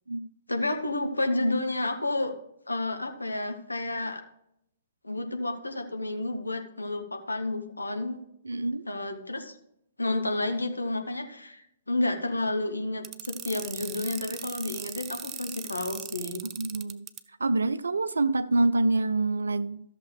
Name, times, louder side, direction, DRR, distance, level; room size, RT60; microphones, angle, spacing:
voice 1, 0.5-2.3 2.7-4.2 5.0-8.2 8.9-9.5 10.0-16.4, left 2 dB, 85° left, 1.1 m, -30 dB
voice 2, 8.4-8.9 16.6-17.1 17.4-19.8, right 2 dB, 75° right, 0.5 m, -26 dB
sound 1, 13.0-17.2, right 10 dB, 25° right, 0.5 m, -38 dB
14.0 x 6.8 x 3.1 m
figure-of-eight pair, 115°, 0 cm